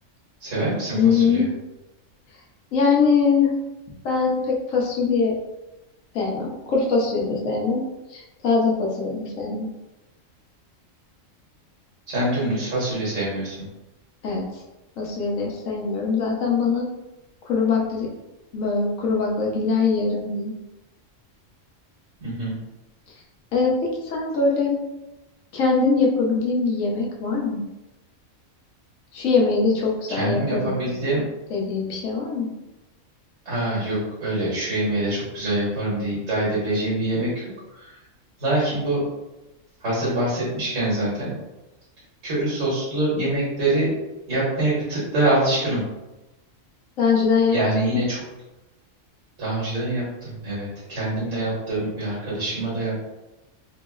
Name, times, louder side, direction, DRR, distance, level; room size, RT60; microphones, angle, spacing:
voice 1, 0.4-1.4 12.1-13.6 22.2-22.6 30.1-31.2 33.5-37.3 38.4-39.0 39.8-41.3 42.2-43.9 44.3-45.8 47.5-48.2 49.4-53.0, right 1 dB, 70° right, -7 dB, 1.7 m, -24 dB
voice 2, 0.9-1.5 2.7-3.5 4.0-5.3 6.1-7.8 8.1-9.7 14.2-14.4 15.0-16.9 17.5-18.1 18.5-20.5 23.5-24.8 25.5-27.6 29.1-30.9 31.5-32.5 47.0-47.6 47.9-48.0, left 4 dB, 85° left, -2 dB, 1.2 m, -22 dB
3.8 x 2.0 x 3.7 m, 1.0 s
omnidirectional pair, 1.3 m